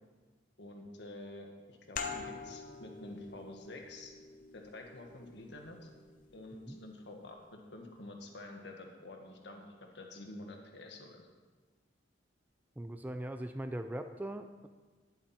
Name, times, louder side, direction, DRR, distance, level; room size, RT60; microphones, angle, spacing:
voice 1, 0.6-4.1 4.5-5.9 6.3-9.6 9.9-11.2, left 2 dB, 70° left, 2 dB, 1.7 m, -48 dB
sound 1, 2.0-7.2, left 5 dB, 45° left, 0.8 m, -46 dB
voice 2, 12.8-14.7, right 1 dB, 10° right, 8 dB, 0.3 m, -40 dB
11.5 x 10.0 x 4.4 m, 1.4 s
head